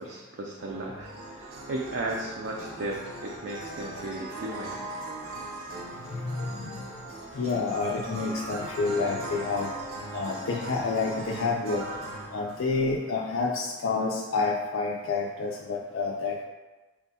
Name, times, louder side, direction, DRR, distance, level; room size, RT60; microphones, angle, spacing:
voice 1, 0.0-4.8, right 2 dB, 55° right, -2 dB, 0.4 m, -35 dB
sound 1, 0.6-12.8, right 2 dB, 85° right, 0.9 m, -39 dB
voice 2, 6.2-6.7 7.4-9.7 10.1-11.8 12.3-16.4, left 4 dB, 70° left, -1 dB, 0.4 m, -29 dB
6.1 x 2.2 x 2.7 m, 1.2 s
head